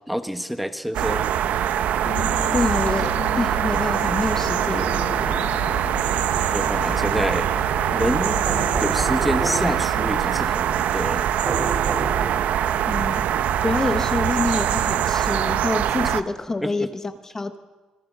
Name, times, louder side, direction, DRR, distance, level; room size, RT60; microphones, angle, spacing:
voice 1, 0.1-1.3 5.7-5.8 6.5-7.5 7.9-11.3 16.6-16.9, equal, ahead, 9 dB, 1.2 m, -27 dB
sound 1, 0.9-16.2, right 10 dB, 80° right, 0.9 m, -23 dB
sound 2, 2.0-10.5, left 9 dB, 90° left, 1.2 m, -36 dB
voice 2, 2.5-5.1 12.9-13.3 13.6-17.6, left 3 dB, 20° left, 9 dB, 1.0 m, -26 dB
sound 3, 4.5-5.5 8.5-9.8 11.5-12.6, right 3 dB, 35° right, 5.5 m, -30 dB
26.5 x 21.0 x 7.4 m, 1.2 s
cardioid pair, 140°, 2 cm